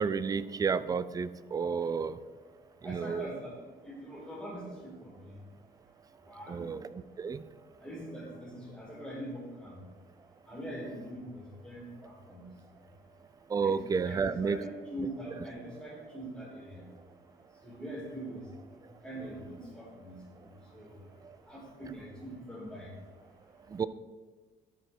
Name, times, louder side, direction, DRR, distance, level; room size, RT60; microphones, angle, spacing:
voice 1, 0.0-2.2 2.8-3.3 6.5-7.4 13.5-14.6 23.7-23.9, right 5 dB, 20° right, 15 dB, 0.4 m, -31 dB
voice 2, 2.8-3.5 3.8-5.4 6.2-6.7 7.8-9.8 10.5-12.5 13.6-16.9 17.6-18.5 19.0-21.0 21.5-22.9, right 1 dB, 5° left, -4 dB, 2.8 m, -43 dB
12.5 x 4.6 x 4.4 m, 1.4 s
cardioid pair, 110°, 17 cm